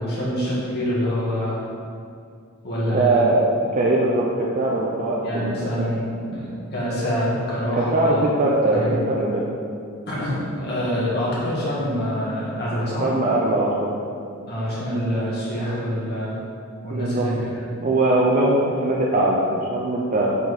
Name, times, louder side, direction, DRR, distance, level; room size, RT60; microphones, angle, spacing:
voice 1, 0.0-1.6 2.6-3.2 5.2-8.2 8.7-9.0 10.1-13.1 14.5-16.4 16.8-17.4, equal, 50° left, -8 dB, 1.6 m, -25 dB
voice 2, 2.9-3.4 3.7-5.9 7.7-9.5 13.0-14.0 16.9-17.3 17.8-20.4, right 2 dB, 35° right, -3 dB, 0.5 m, -21 dB
7.2 x 4.3 x 4.1 m, 2.4 s
head